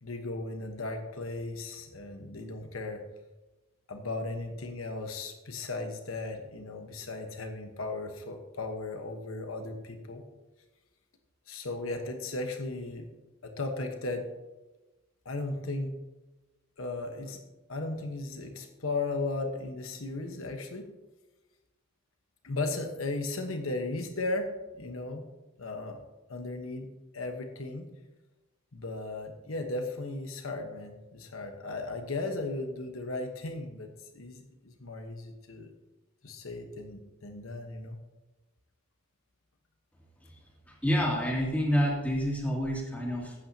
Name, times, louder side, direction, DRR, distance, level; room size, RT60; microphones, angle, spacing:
voice 1, 0.0-3.0 3.9-10.2 11.5-13.1 13.4-14.3 15.2-15.9 16.8-17.4 17.7-20.9 22.4-25.3 25.6-26.0 26.3-26.9 27.1-27.9 28.7-35.7 36.2-38.0, left 2 dB, 90° left, 5 dB, 1.2 m, -36 dB
voice 2, 40.8-43.3, equal, 10° left, -3 dB, 2.6 m, -28 dB
16.0 x 8.9 x 2.8 m, 1.1 s
head